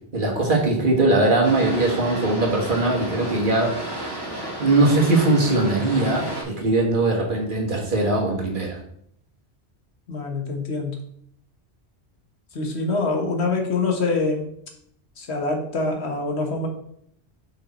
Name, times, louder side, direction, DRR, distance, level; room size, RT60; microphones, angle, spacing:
voice 1, 0.1-3.8 4.6-8.8, right 2 dB, 50° right, -1 dB, 1.7 m, -20 dB
Boat Water vehicle, 1.4-6.4, right 1 dB, 20° left, 2.3 m, -32 dB
voice 2, 10.1-11.0 12.5-14.5 15.2-16.7, left 3 dB, 75° left, 3 dB, 1.5 m, -25 dB
6.2 x 5.3 x 4.2 m, 0.69 s
omnidirectional pair, 1.1 m